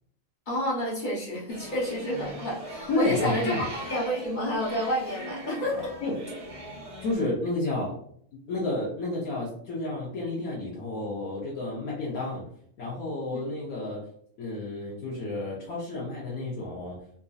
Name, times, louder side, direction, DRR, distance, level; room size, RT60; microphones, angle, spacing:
voice 1, 0.5-5.9 13.3-13.4, equal, 40° left, -4 dB, 0.9 m, -29 dB
sound 1, 1.5-7.1, right 1 dB, 30° right, 0.8 m, -39 dB
voice 2, 2.9-3.6 6.0-6.2 7.0-7.9 8.5-12.4 12.8-14.0 14.4-17.0, left 2 dB, 85° left, -5 dB, 1.3 m, -31 dB
4.1 x 2.7 x 2.3 m, 0.64 s
omnidirectional pair, 1.5 m